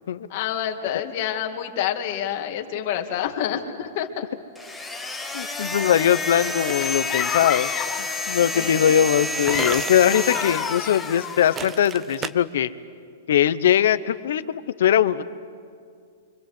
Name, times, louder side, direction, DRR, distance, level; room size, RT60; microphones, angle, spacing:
voice 1, 0.3-4.3 8.5-8.9, left 10 dB, 45° left, 4 dB, 2.2 m, -28 dB
vibrating sander and saw tool, 4.6-11.9, left 2 dB, 5° left, 1.3 m, -30 dB
voice 2, 5.3-7.7 8.0-12.7 13.3-15.2, left 10 dB, 70° left, 14 dB, 1.0 m, -21 dB
sound 1, 6.4-7.6 9.5-10.6 11.6-12.3, right 6 dB, 15° right, 0.7 m, -34 dB
sound 2, 7.1-8.1 9.2-11.6, left 10 dB, 25° left, 0.9 m, -30 dB
29.0 x 25.5 x 7.9 m, 2.2 s
hypercardioid pair, 160°, 0 cm